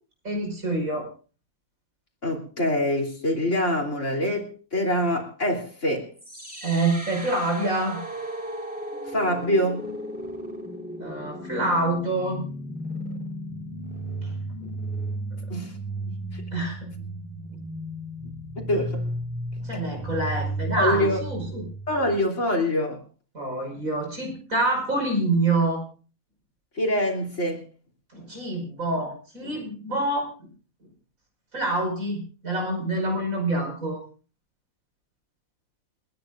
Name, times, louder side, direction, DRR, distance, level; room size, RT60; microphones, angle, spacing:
voice 1, 0.2-1.1 6.6-8.0 11.0-12.4 14.2-14.3 14.6-14.7 16.5-16.9 19.6-21.7 23.3-25.8 28.1-30.5 31.5-34.0, right 2 dB, 75° right, 2 dB, 5.9 m, -26 dB
voice 2, 2.2-6.1 9.1-9.8 15.5-15.7 16.1-16.4 18.2-19.0 20.8-21.2 21.9-23.0 26.8-27.6, left 1 dB, 60° left, 1 dB, 3.6 m, -25 dB
sound 1, 6.2-22.2, right 1 dB, 5° right, 3.4 m, -34 dB
30.0 x 10.5 x 2.5 m, 0.36 s
omnidirectional pair, 1.5 m